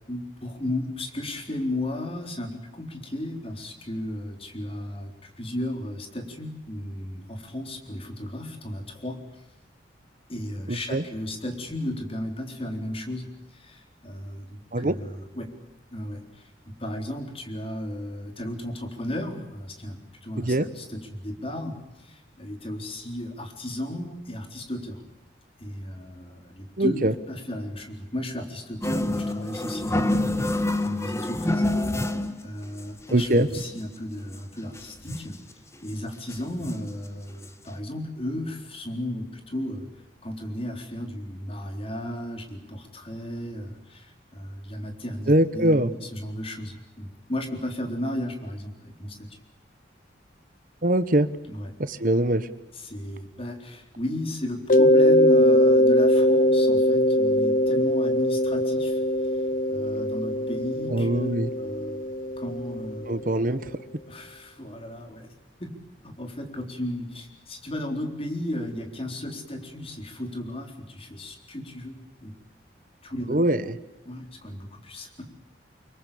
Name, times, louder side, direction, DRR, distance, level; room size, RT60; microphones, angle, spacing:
voice 1, 0.1-9.4 10.3-15.5 15.9-25.0 25.6-31.7 32.4-35.3 35.8-39.9 40.2-49.3 51.5-51.7 52.7-59.0 59.7-61.3 61.6-62.1 62.4-63.1 64.1-65.3 65.6-65.7 66.0-72.3 73.0-73.4 74.1-75.3, left 1 dB, 30° left, 5 dB, 3.9 m, -34 dB
voice 2, 10.7-11.0 14.7-15.0 20.4-20.7 26.8-27.1 33.1-33.5 45.3-45.9 50.8-51.3 51.8-52.5 60.9-61.5 63.1-63.7 73.3-73.6, right 1 dB, 50° right, 14 dB, 1.3 m, -22 dB
sound 1, 28.8-32.4 32.8-32.9 33.1-33.9 34.3-34.4 34.6-35.4 35.9-36.0 36.3-37.0 37.4-37.5 37.7-37.8, left 1 dB, 15° left, 1.6 m, -27 dB
Mallet percussion, 54.7-63.3, equal, 45° left, 1.0 m, -21 dB
25.0 x 23.0 x 8.6 m, 0.94 s
head